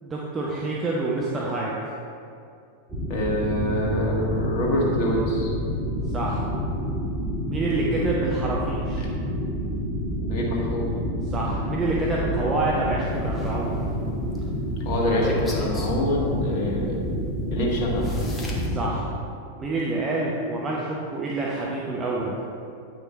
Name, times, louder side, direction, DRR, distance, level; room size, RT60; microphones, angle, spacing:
voice 1, 0.0-1.8 6.1-6.4 7.5-9.0 11.3-13.8 18.7-19.0 19.6-22.4, right 2 dB, 20° right, -4 dB, 0.9 m, -27 dB
sound 1, 2.9-18.9, equal, ahead, 1.7 m, -28 dB
voice 2, 3.1-5.5 9.0-9.1 10.2-10.9 14.8-17.1 17.5-18.1, equal, 45° left, -2 dB, 1.6 m, -25 dB
sound 2, 13.1-14.4 15.2-15.9 17.4-17.5 18.0-18.7, left 1 dB, 15° left, 1.2 m, -36 dB
8.9 x 5.1 x 4.1 m, 2.4 s
figure-of-eight pair, 90°, 0 cm